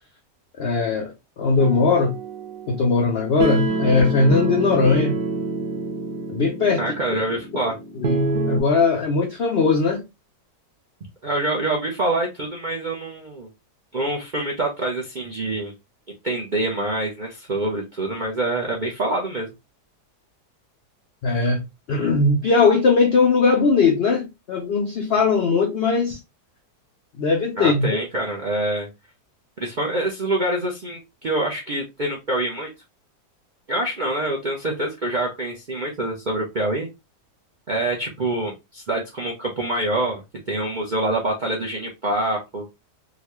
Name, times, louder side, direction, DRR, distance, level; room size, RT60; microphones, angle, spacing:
voice 1, 0.6-2.1 2.7-5.2 6.3-6.8 8.0-10.0 21.2-26.2 27.2-28.0, left 4 dB, 75° left, 0.5 m, -19 dB
sound 1, 1.6-8.6, right 2 dB, 80° right, 1.4 m, -27 dB
voice 2, 6.8-7.7 11.2-13.5 13.9-15.7 16.2-19.5 27.6-28.9 29.6-32.7 33.7-36.9 37.7-40.2 40.5-42.6, right 1 dB, 60° right, 0.5 m, -25 dB
3.9 x 2.2 x 2.9 m
omnidirectional pair, 1.8 m